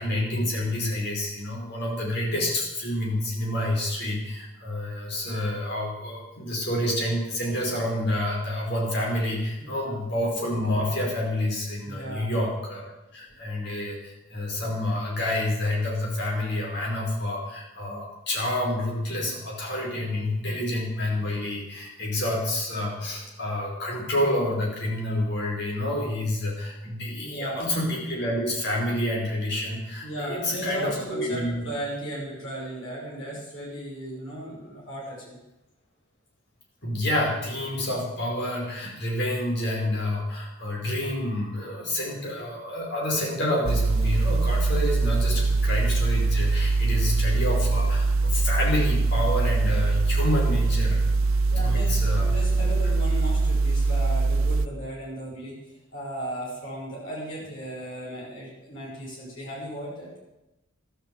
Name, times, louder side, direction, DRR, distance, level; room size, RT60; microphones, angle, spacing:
voice 1, 0.0-12.8 13.1-31.6 36.8-51.2 51.6-52.5, left 1 dB, 55° left, -2 dB, 5.2 m, -28 dB
voice 2, 9.6-10.0 11.9-12.3 27.1-27.6 30.0-35.4 51.5-60.2, right 1 dB, 70° left, -5 dB, 6.0 m, -36 dB
sound 1, 43.7-54.7, right 3 dB, 90° right, 0.7 m, -23 dB
14.0 x 12.0 x 7.9 m, 0.96 s
head